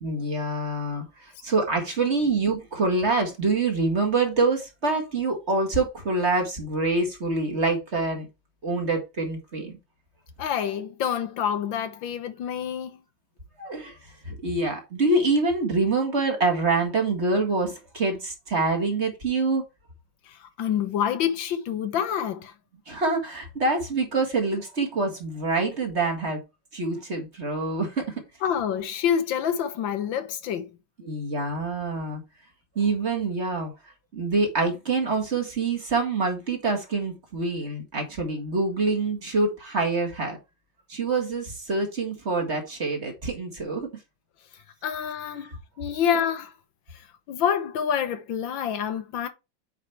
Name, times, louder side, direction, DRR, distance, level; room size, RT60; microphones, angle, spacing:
voice 1, 0.0-8.3 8.6-9.8 13.6-14.0 14.2-19.6 22.9-26.4 26.7-28.0 31.0-32.2 32.8-33.7 34.1-40.4 40.9-43.9 45.5-45.6, right 3 dB, 35° right, 2.0 m, -26 dB
voice 2, 10.4-13.0 20.3-22.5 28.4-30.7 44.8-46.5 47.3-49.3, left 8 dB, 80° left, 1.7 m, -27 dB
8.4 x 4.8 x 3.4 m
omnidirectional pair, 2.1 m